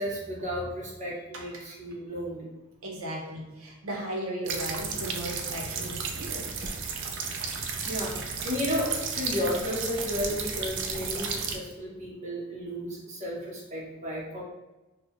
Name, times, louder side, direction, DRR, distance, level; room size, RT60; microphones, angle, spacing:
voice 1, 0.0-2.5 7.8-14.4, left 1 dB, 35° right, -5 dB, 0.9 m, -33 dB
voice 2, 2.8-6.5, right 1 dB, 80° right, -1 dB, 0.8 m, -36 dB
sound 1, 4.4-11.6, right 5 dB, 60° right, 0.4 m, -33 dB
3.7 x 2.2 x 3.0 m, 1.1 s
head